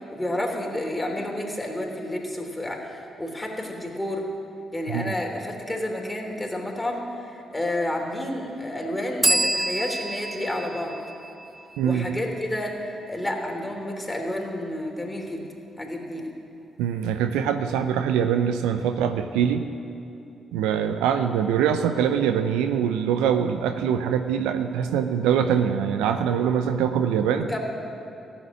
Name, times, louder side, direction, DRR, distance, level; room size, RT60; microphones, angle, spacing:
voice 1, 0.1-4.3 4.7-11.0 11.8-15.4 15.8-16.3 27.5-27.6, left 1 dB, 15° left, 0 dB, 3.2 m, -30 dB
sound 1, 9.2-12.8, right 1 dB, 10° right, 0.3 m, -28 dB
voice 2, 11.8-12.1 16.8-19.6 20.5-27.6, right 8 dB, 75° right, 8 dB, 0.6 m, -23 dB
15.0 x 7.3 x 10.0 m, 2.8 s
hypercardioid pair, 40°, 0 cm